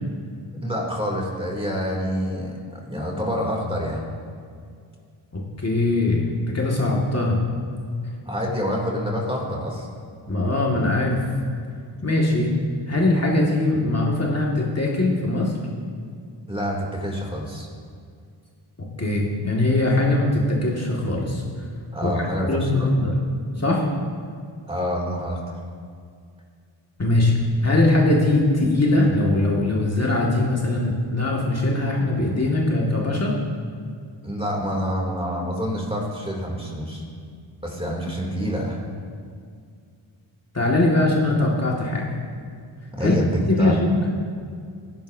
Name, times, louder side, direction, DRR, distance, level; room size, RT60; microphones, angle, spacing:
voice 1, 0.6-4.0 8.3-9.9 16.5-17.7 21.9-22.7 24.7-25.4 34.2-37.0 37.6-38.8 43.0-43.8, equal, 10° right, -1 dB, 2.8 m, -27 dB
voice 2, 5.3-7.4 10.3-11.2 12.0-12.6 12.9-15.5 18.8-21.4 22.0-23.1 23.6-23.9 27.0-27.3 27.6-33.4 40.5-42.1 43.0-43.2 43.5-43.9, left 2 dB, 30° left, -3 dB, 2.0 m, -21 dB
16.0 x 11.0 x 2.7 m, 2.2 s
cardioid pair, 60°, 50 cm